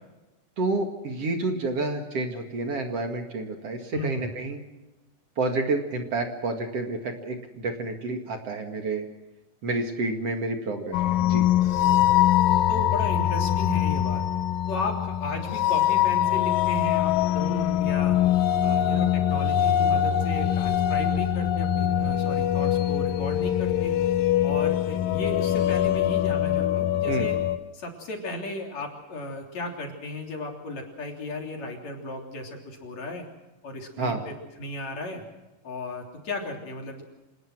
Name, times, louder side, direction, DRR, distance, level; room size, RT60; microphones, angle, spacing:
voice 1, 0.6-4.6 5.4-9.1 9.6-11.5 27.1-27.3 34.0-34.2, right 2 dB, 50° right, 4 dB, 2.8 m, -29 dB
voice 2, 3.9-4.3 11.8-12.1 12.7-14.2 14.7-18.2 18.6-24.0 24.4-27.4 27.7-33.3 33.6-35.2 35.6-37.0, left 1 dB, 55° left, 2 dB, 4.5 m, -35 dB
sound 1, 10.9-27.6, left 11 dB, 90° left, 2.7 m, -23 dB
27.0 x 19.5 x 6.2 m, 1.1 s
omnidirectional pair, 3.8 m